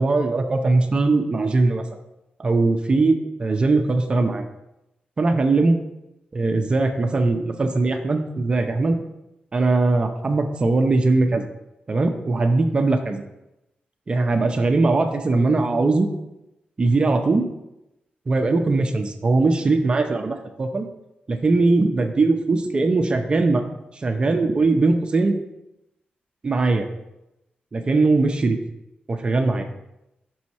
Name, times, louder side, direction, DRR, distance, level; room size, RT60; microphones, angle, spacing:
voice 1, 0.0-1.9 2.4-4.4 5.2-5.8 6.3-9.0 9.5-11.5 11.9-13.2 14.1-16.1 16.8-17.4 18.3-20.9 21.3-23.6 23.9-25.4 26.4-26.9 27.7-28.6 29.1-29.7, right 3 dB, 30° right, 5 dB, 0.6 m, -20 dB
6.2 x 6.2 x 4.2 m, 0.91 s
wide cardioid pair, 175°, 3 cm